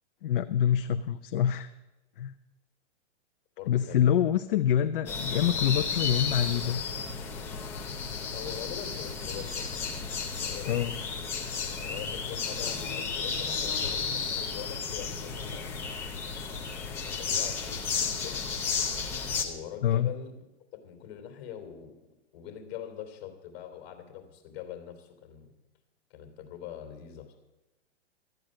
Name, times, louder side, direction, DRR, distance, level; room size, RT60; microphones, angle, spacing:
voice 1, 0.2-1.7 2.2-2.3 3.7-6.8 10.7-11.0 19.8-20.1, left 10 dB, 50° left, 9 dB, 0.6 m, -26 dB
voice 2, 3.6-4.2 4.7-5.2 8.3-9.7 10.4-10.9 11.8-15.8 16.8-18.4 19.4-20.4 20.7-21.9 22.3-25.5 26.1-27.4, left 9 dB, 35° left, 6 dB, 3.2 m, -43 dB
sound 1, 5.1-19.5, left 5 dB, 5° left, 0.4 m, -33 dB
13.0 x 9.1 x 7.6 m, 1.0 s
hypercardioid pair, 155°, 36 cm